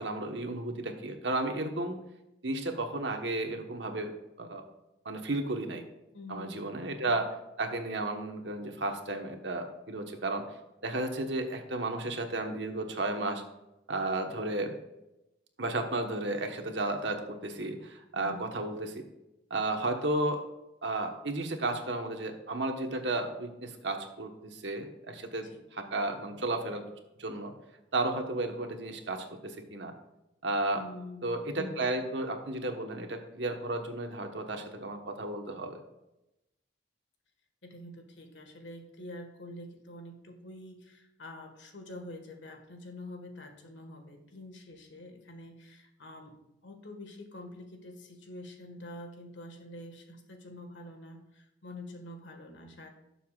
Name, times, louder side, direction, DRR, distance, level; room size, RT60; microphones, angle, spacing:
voice 1, 0.0-2.0 2.4-4.1 4.4-4.7 5.0-5.8 6.3-7.3 7.6-10.4 10.8-13.4 13.9-14.7 15.6-19.0 19.5-20.4 20.8-26.9 27.2-27.5 27.9-29.9 30.4-30.8 31.2-35.8, right 2 dB, 70° right, 4 dB, 1.3 m, -33 dB
voice 2, 6.1-6.8 18.1-18.5 25.4-25.6 30.7-31.3 37.6-46.4 46.6-52.9, left 1 dB, 75° left, 4 dB, 1.7 m, -46 dB
18.0 x 7.0 x 2.5 m, 0.93 s
head